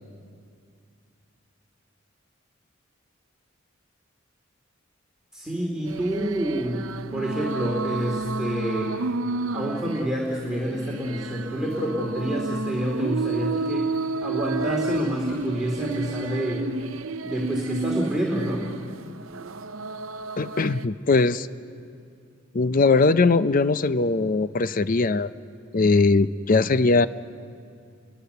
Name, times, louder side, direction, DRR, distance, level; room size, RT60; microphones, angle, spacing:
voice 1, 5.3-8.9 9.5-13.9 14.2-16.7 17.2-18.7, equal, 5° right, -3 dB, 2.6 m, -28 dB
sound 1, 5.9-20.9, right 3 dB, 85° right, 0.6 m, -31 dB
voice 2, 20.4-21.5 22.5-25.3 25.7-27.1, left 3 dB, 45° left, 13 dB, 0.6 m, -20 dB
29.5 x 22.5 x 6.8 m, 2.4 s
head